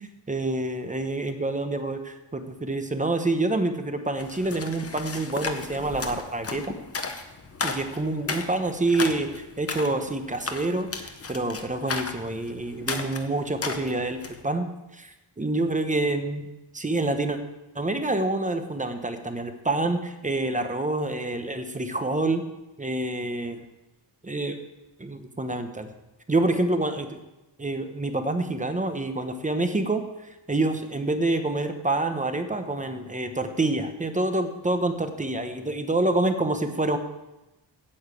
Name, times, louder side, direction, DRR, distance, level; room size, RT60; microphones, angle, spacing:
voice 1, 0.3-6.8 7.6-16.5 16.7-17.4 17.7-22.4 22.8-23.6 24.2-24.6 25.0-25.9 26.3-27.2 27.6-30.0 30.5-37.0, right 2 dB, 15° right, 7 dB, 0.8 m, -27 dB
sound 1, 4.2-14.4, left 4 dB, 30° left, 0.9 m, -34 dB
8.6 x 8.0 x 8.1 m, 1.0 s
wide cardioid pair, 170°, 47 cm